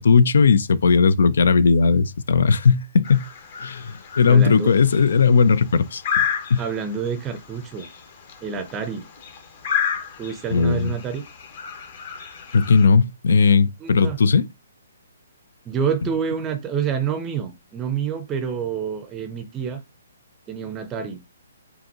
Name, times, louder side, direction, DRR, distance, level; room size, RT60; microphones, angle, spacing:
voice 1, 0.0-3.2 3.6-6.0 6.5-6.6 10.5-10.9 12.5-14.5, left 5 dB, 70° left, 0.4 m, -17 dB
sound 1, 3.0-12.9, left 8 dB, 45° left, 1.1 m, -32 dB
voice 2, 4.3-4.7 6.6-7.9 8.4-9.1 10.2-11.2 13.8-14.2 15.7-19.8 20.5-21.2, right 7 dB, 15° right, 0.5 m, -28 dB
5.2 x 2.5 x 2.9 m
hypercardioid pair, 150°, 0 cm